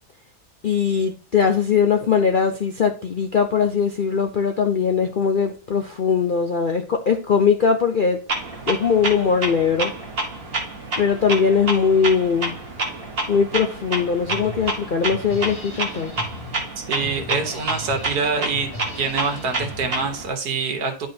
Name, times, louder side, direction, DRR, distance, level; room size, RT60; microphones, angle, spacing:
voice 1, 0.6-8.2 8.7-9.9 11.0-12.5 13.3-16.1, left 6 dB, 60° left, 4 dB, 0.5 m, -20 dB
Clock, 8.3-20.3, right 2 dB, 40° right, 1.3 m, -29 dB
Drum kit, 14.3-20.2, left 1 dB, 30° left, 2.8 m, -38 dB
voice 2, 16.8-18.7 19.0-21.1, right 4 dB, 75° right, 5 dB, 1.7 m, -25 dB
10.5 x 4.8 x 2.8 m, 0.35 s
omnidirectional pair, 1.7 m